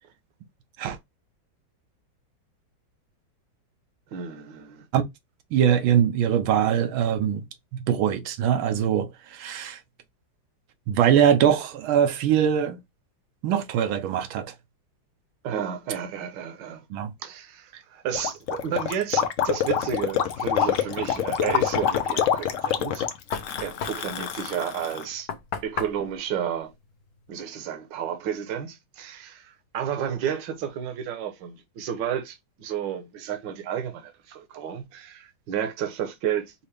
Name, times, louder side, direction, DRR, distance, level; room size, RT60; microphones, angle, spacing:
voice 1, 4.1-4.8 15.4-16.8 17.2-23.1 23.6-25.3 25.6-26.7 27.3-36.5, right 9 dB, 70° right, 1.5 m, -31 dB
voice 2, 5.5-7.4 7.7-9.8 10.9-12.8 13.4-14.5 16.9-17.1, right 9 dB, 85° right, 1.5 m, -22 dB
Gurgling, 18.1-25.0, left 9 dB, 80° left, 0.7 m, -26 dB
Knock, 21.5-27.4, left 5 dB, 60° left, 1.1 m, -37 dB
5.5 x 2.6 x 3.3 m
omnidirectional pair, 2.2 m